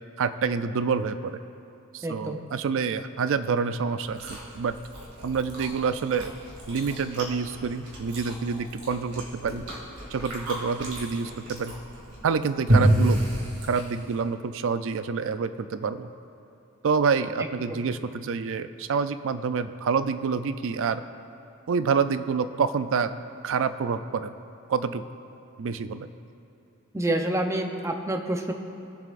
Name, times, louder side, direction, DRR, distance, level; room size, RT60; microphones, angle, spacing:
voice 1, 0.2-1.4 1.9-4.8 5.2-6.3 6.7-9.6 10.1-11.7 12.2-13.2 13.6-16.1 16.8-21.0 21.7-23.1 23.4-24.3 24.7-25.0 25.6-26.1, right 5 dB, 60° right, 12 dB, 0.4 m, -27 dB
voice 2, 2.0-2.4 17.4-17.9 26.9-28.5, right 1 dB, 15° right, 4 dB, 0.6 m, -28 dB
Chewing mastication, 4.0-14.2, right 1 dB, 85° right, 2.6 m, -30 dB
21.5 x 7.4 x 2.5 m, 2.7 s
head